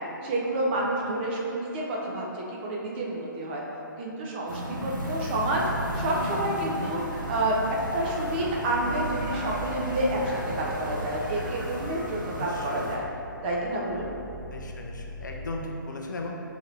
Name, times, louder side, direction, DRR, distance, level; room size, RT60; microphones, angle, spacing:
voice 1, 0.2-3.6 4.0-5.6 5.9-7.6 7.9-13.0 13.4-14.1, right 1 dB, 30° right, -3 dB, 0.6 m, -29 dB
sound 1, 4.5-13.0, right 1 dB, 65° right, 1.0 m, -34 dB
sound 2, 7.6-15.5, left 2 dB, 15° left, 0.7 m, -45 dB
voice 2, 12.4-12.9 14.5-16.3, left 2 dB, 60° left, 0 dB, 0.5 m, -37 dB
6.3 x 3.0 x 2.6 m, 2.8 s
figure-of-eight pair, 130°, 11 cm